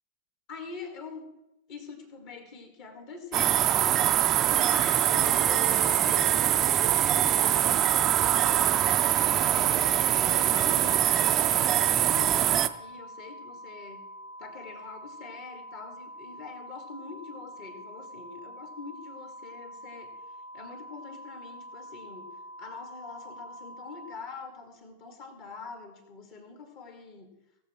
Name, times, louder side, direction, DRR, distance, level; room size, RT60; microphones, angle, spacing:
voice 1, 0.5-1.3 1.7-3.7 4.7-8.9 9.5-14.0 14.4-20.1 20.5-22.3 22.6-27.3, left 5 dB, 45° left, 5 dB, 2.2 m, -44 dB
sound 1, 3.3-12.7, right 11 dB, 30° right, 0.5 m, -23 dB
sound 2, 4.7-24.2, equal, 85° left, 2.8 m, -45 dB
17.5 x 7.2 x 4.5 m, 0.91 s
figure-of-eight pair, 90°, 0 cm